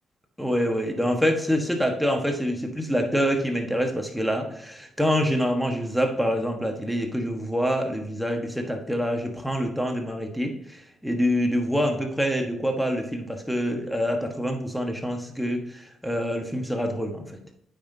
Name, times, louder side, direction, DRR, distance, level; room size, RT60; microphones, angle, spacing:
voice 1, 0.4-17.4, equal, ahead, 3 dB, 1.2 m, -26 dB
8.5 x 5.8 x 2.7 m, 0.73 s
cardioid pair, 90°, 0 cm